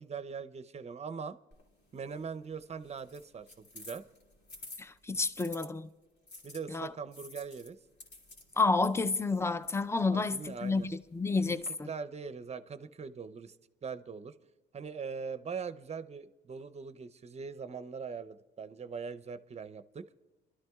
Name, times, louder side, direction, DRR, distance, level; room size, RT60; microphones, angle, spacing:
voice 1, 0.0-1.4 1.9-4.1 6.4-7.8 10.1-10.9 11.5-11.6 11.8-13.6 13.8-14.4 14.7-20.1, right 5 dB, 35° right, 0.6 m, -41 dB
sound 1, 1.5-5.7 6.3-11.7, left 2 dB, 60° left, 2.4 m, -53 dB
voice 2, 4.8-5.9 6.7-6.9 8.6-11.9, left 3 dB, 15° left, 0.5 m, -30 dB
26.5 x 12.5 x 2.3 m
cardioid pair, 90°, 20 cm